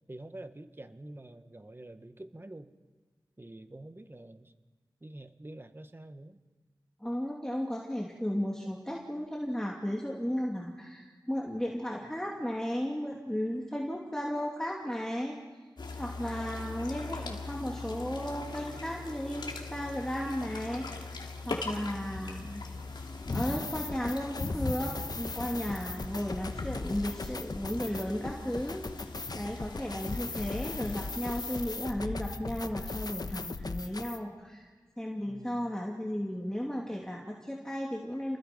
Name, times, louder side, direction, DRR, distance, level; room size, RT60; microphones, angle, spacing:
voice 1, 0.1-2.7 3.4-4.5 5.0-6.4 35.2-35.6, right 1 dB, 30° right, 9 dB, 1.5 m, -47 dB
voice 2, 7.0-15.4 16.0-20.9 21.4-22.6 23.3-28.8 29.3-34.7 35.0-38.4, equal, 10° left, -2 dB, 2.8 m, -34 dB
sound 1, 15.8-31.6, left 3 dB, 80° left, 2.7 m, -40 dB
sound 2, 23.2-34.2, left 3 dB, 60° left, 1.1 m, -38 dB
30.0 x 20.0 x 5.5 m, 1.4 s
wide cardioid pair, 55°, 8 cm